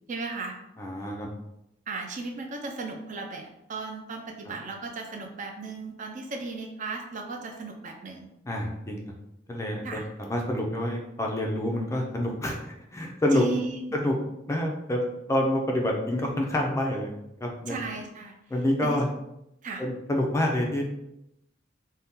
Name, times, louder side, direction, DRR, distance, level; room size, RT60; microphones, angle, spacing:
voice 1, 0.1-0.6 1.9-8.3 9.8-10.1 13.3-13.8 17.7-18.3 18.8-19.0 19.6-19.8, right 3 dB, 45° right, 3 dB, 0.4 m, -35 dB
voice 2, 0.8-1.3 8.5-9.0 9.5-13.5 13.9-14.1 14.5-15.0 15.3-17.1 17.4-17.8 18.5-19.1 19.8-20.9, left 1 dB, 15° left, 0 dB, 0.4 m, -27 dB
2.7 x 2.1 x 3.6 m, 0.84 s
head